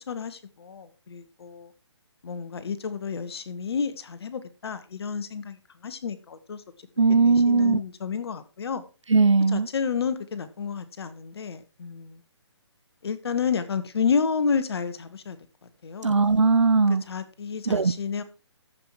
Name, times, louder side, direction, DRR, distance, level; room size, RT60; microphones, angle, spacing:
voice 1, 0.1-1.7 2.2-5.6 5.8-6.6 7.3-8.8 9.5-12.2 13.0-15.4 15.8-16.1 17.1-18.2, left 6 dB, 60° left, 1.4 m, -30 dB
voice 2, 7.0-7.8 9.1-9.7 16.0-17.0 17.7-17.9, right 4 dB, 90° right, 0.7 m, -19 dB
14.0 x 5.9 x 4.6 m
figure-of-eight pair, 145°, 15 cm